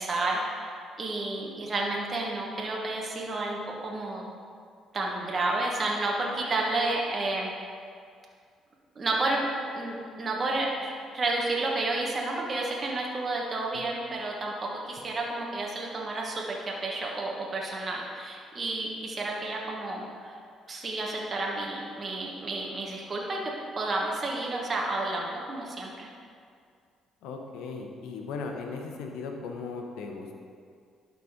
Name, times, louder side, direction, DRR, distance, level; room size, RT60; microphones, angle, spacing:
voice 1, 0.0-4.2 4.9-7.5 8.9-9.5 9.7-20.4 20.7-26.1, right 2 dB, 40° right, -2 dB, 1.4 m, -31 dB
voice 2, 27.2-30.4, left 4 dB, 85° left, 2 dB, 0.9 m, -37 dB
11.5 x 4.2 x 5.0 m, 2.2 s
cardioid pair, 85°, 0 cm